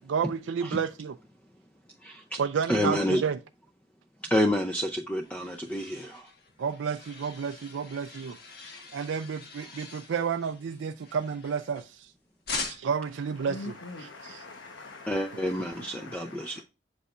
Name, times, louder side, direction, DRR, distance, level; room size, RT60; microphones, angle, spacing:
voice 1, 0.1-1.1 2.4-3.4 6.6-8.4 8.9-12.1 12.6-13.6 14.2-14.4, right 6 dB, 90° right, 0.4 m, -31 dB
voice 2, 2.0-2.4 2.7-3.2 4.3-6.3 15.1-16.6, equal, 10° left, 0.5 m, -28 dB
sound 1, 4.9-12.0 12.5-13.1, left 4 dB, 55° left, 1.6 m, -42 dB
voice 3, 13.1-16.6, left 3 dB, 85° left, 1.0 m, -44 dB
8.2 x 5.5 x 2.5 m
head